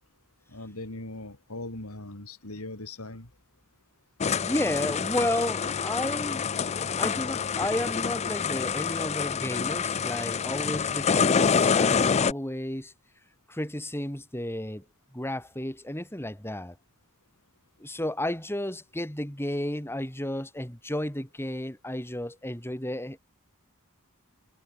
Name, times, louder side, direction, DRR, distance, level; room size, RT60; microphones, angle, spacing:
voice 1, 0.5-3.3, left 2 dB, 75° left, 3.8 m, -39 dB
sound 1, 4.2-12.3, left 6 dB, 30° left, 0.4 m, -27 dB
voice 2, 4.4-6.5 7.0-12.9 13.5-14.8 15.1-16.7 17.8-23.2, left 1 dB, 10° left, 5.0 m, -32 dB
head